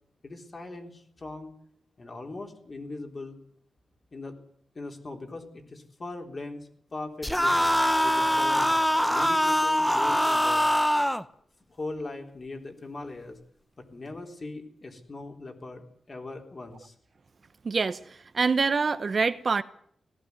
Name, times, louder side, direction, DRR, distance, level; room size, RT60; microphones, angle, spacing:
voice 1, 0.2-1.5 2.0-3.4 4.1-4.4 4.8-7.6 8.0-10.7 11.7-13.4 13.8-16.9, left 2 dB, 35° left, 3.8 m, -40 dB
sound 1, 7.2-11.2, equal, 5° left, 0.8 m, -23 dB
voice 2, 17.6-19.6, right 4 dB, 45° right, 0.8 m, -26 dB
17.5 x 15.5 x 9.6 m
wide cardioid pair, 120°, 0 cm